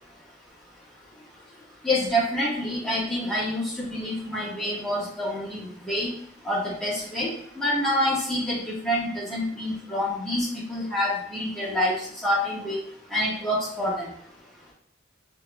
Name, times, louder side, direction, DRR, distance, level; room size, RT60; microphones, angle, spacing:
voice 1, 1.8-6.1 6.4-7.3 7.5-11.9 12.2-12.8 13.1-14.1, left 1 dB, 5° left, -9 dB, 1.7 m, -27 dB
4.7 x 3.6 x 2.4 m, 0.62 s
head